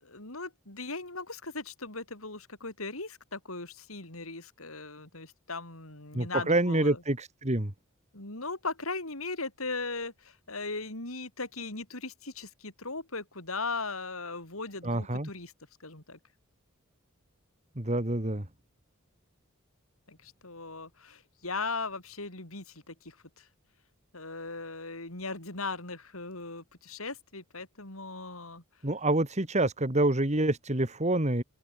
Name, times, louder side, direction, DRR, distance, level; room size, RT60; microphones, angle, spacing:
voice 1, 0.0-7.0 8.1-15.5 15.8-16.2 20.1-23.5 24.1-28.6, left 3 dB, 80° left, 6.6 m, -38 dB
voice 2, 6.1-7.7 14.8-15.3 17.8-18.5 28.8-31.4, right 1 dB, 35° right, 2.4 m, -27 dB
open air
head